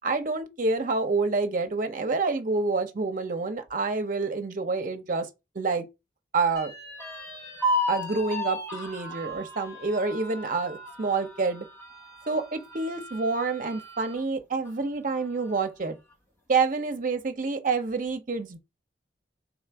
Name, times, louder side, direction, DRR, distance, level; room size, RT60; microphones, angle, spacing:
voice 1, 0.0-5.3 5.5-5.9 6.3-6.7 7.9-11.7 12.3-16.0 16.5-18.6, right 4 dB, 45° right, 0.7 m, -28 dB
sound 1, 6.6-14.2 14.7-14.8 15.1-15.8, left 1 dB, 15° left, 1.1 m, -35 dB
3.9 x 2.5 x 4.5 m
head